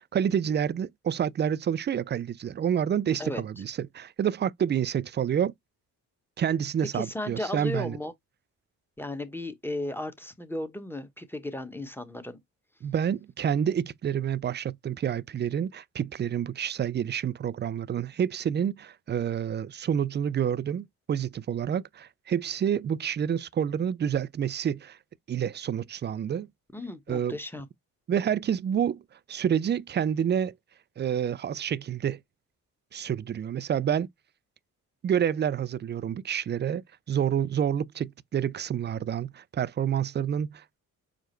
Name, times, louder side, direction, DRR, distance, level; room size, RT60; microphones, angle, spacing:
voice 1, 0.0-5.5 6.4-8.0 12.8-25.0 25.3-26.5 27.1-27.4 28.1-29.0 29.3-30.5 31.0-32.2 32.9-34.1 35.0-40.8, right 9 dB, 30° right, 0.4 m, -28 dB
voice 2, 6.9-8.1 9.0-12.4 26.7-27.7, left 1 dB, 5° left, 1.1 m, -35 dB
4.8 x 2.0 x 4.4 m
supercardioid pair, 55°, 38 cm